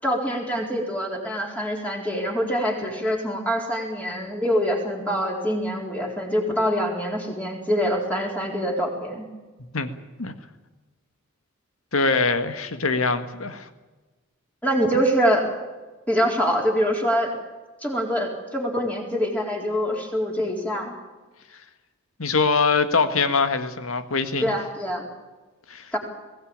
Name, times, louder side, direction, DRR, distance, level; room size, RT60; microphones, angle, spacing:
voice 1, 0.0-9.3 14.6-15.5 16.1-17.3 17.8-20.9 24.4-25.0 25.9-26.0, equal, 5° left, 0 dB, 4.1 m, -25 dB
voice 2, 11.9-13.7 22.2-24.5 25.7-25.9, left 4 dB, 80° left, 9 dB, 1.8 m, -23 dB
21.5 x 17.0 x 8.8 m, 1.2 s
head